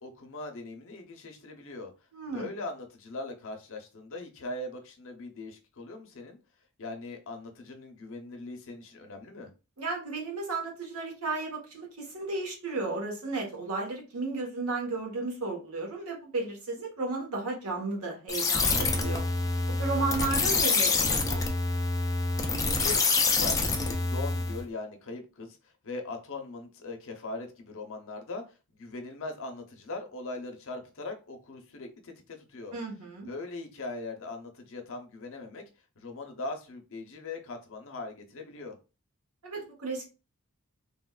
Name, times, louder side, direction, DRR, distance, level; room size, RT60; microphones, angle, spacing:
voice 1, 0.0-1.9 2.3-6.4 6.8-9.5 22.6-25.6 25.8-32.7 33.2-35.6 36.0-38.8, left 2 dB, 65° left, 0.7 m, -40 dB
voice 2, 2.1-2.5 9.8-19.2 19.8-21.4 32.7-33.3 39.4-40.0, right 3 dB, 75° right, 1.1 m, -34 dB
sound 1, 18.3-24.6, left 3 dB, 15° left, 0.4 m, -26 dB
3.3 x 2.3 x 2.3 m
head